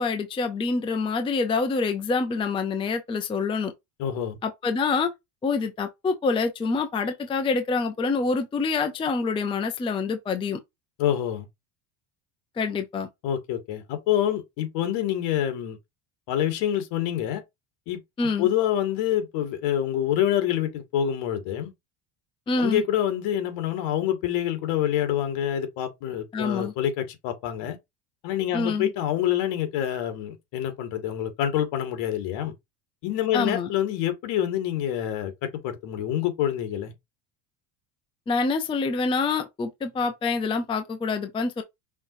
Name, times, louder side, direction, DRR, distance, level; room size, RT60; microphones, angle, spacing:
voice 1, 0.0-3.7 4.4-5.1 5.4-10.6 12.6-13.1 18.2-18.5 22.5-22.8 26.3-26.7 28.5-28.9 33.3-33.7 38.3-41.6, left 4 dB, 10° left, 0.5 m, -26 dB
voice 2, 4.0-4.4 11.0-11.5 13.2-15.8 16.3-17.4 17.9-18.0 18.4-21.7 22.6-27.8 28.2-32.5 33.0-36.9, left 11 dB, 70° left, 1.9 m, -26 dB
5.7 x 3.0 x 2.6 m
cardioid pair, 150°, 44 cm